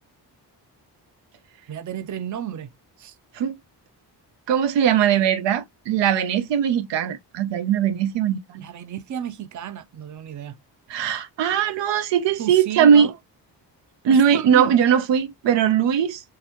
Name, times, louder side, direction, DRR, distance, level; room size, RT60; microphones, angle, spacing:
voice 1, 1.7-2.7 3.0-3.2 8.5-10.6 12.4-13.2 14.1-14.7, right 9 dB, 45° right, 0.6 m, -32 dB
voice 2, 4.5-8.6 10.9-13.1 14.0-16.2, right 8 dB, 90° right, 0.6 m, -20 dB
3.9 x 2.6 x 2.8 m
cardioid pair, 85°, 42 cm